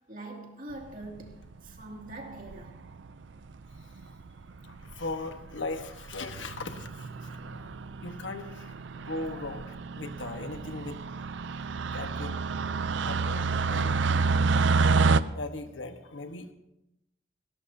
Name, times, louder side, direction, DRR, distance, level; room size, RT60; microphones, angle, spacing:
voice 1, 0.1-2.8 7.6-7.7, right 2 dB, 45° right, 2.5 m, -43 dB
sound 1, 1.0-1.5 2.5-2.9 3.8-3.9 4.0-4.1 4.4-4.5 4.8-5.1 5.6-5.8 6.1-15.2, right 4 dB, 70° right, 0.5 m, -28 dB
voice 2, 4.6-11.0 11.9-12.4 13.0-14.0 14.6-14.7 15.3-16.5, left 2 dB, 75° left, 1.3 m, -39 dB
19.0 x 17.0 x 2.8 m
head